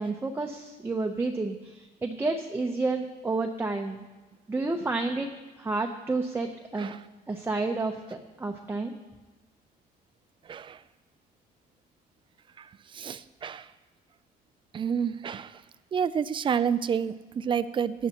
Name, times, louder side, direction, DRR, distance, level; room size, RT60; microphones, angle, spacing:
voice 1, 0.0-4.0 4.5-5.3 5.6-6.9 7.3-8.9, right 3 dB, 15° right, 2 dB, 0.8 m, -30 dB
voice 2, 10.5-10.8 12.6-12.7 12.9-13.7 14.7-15.6 15.9-18.1, right 7 dB, 30° right, 15 dB, 0.4 m, -29 dB
16.5 x 10.0 x 3.0 m, 1.3 s
cardioid pair, 110°, 17 cm